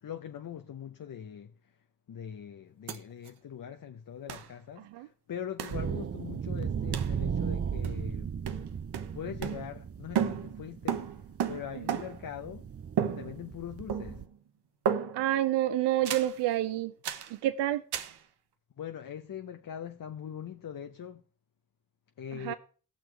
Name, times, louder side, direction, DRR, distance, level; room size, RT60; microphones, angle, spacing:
voice 1, 0.0-1.8 2.1-8.3 9.1-11.2 11.5-12.7 13.0-14.3 18.8-21.2 22.2-22.5, left 9 dB, 55° left, 0.9 m, -42 dB
sound 1, 2.9-3.0 3.3-3.4 4.3-4.5 5.6-5.8 6.9-7.2 7.8-8.2 8.4-9.9 10.1-12.3 13.0-13.6 13.9-14.4 14.9-15.4 16.0-16.4 17.0-17.3 17.9-18.2, right 8 dB, 75° right, 1.0 m, -34 dB
voice 2, 4.8-5.1 11.7-12.0 15.1-16.9 17.3-17.8 22.3-22.5, right 13 dB, 90° right, 0.5 m, -29 dB
sound 2, 5.7-14.2, right 7 dB, 35° right, 0.7 m, -36 dB
16.5 x 6.3 x 4.5 m
supercardioid pair, 45°, 41 cm